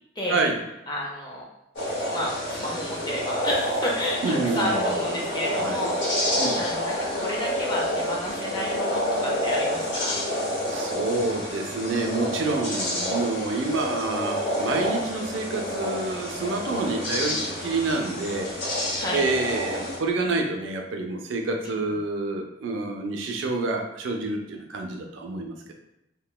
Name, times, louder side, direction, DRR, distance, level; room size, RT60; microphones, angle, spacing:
voice 1, 0.9-1.4 2.1-10.2 17.2-17.5 19.0-19.3 21.6-21.8, left 1 dB, 20° left, -2 dB, 0.5 m, -31 dB
sound 1, 1.8-20.0, equal, 65° left, 0.8 m, -28 dB
voice 2, 4.2-5.9 6.4-6.6 10.7-25.7, right 3 dB, 70° right, 3 dB, 0.4 m, -28 dB
3.0 x 2.1 x 2.2 m, 0.88 s
head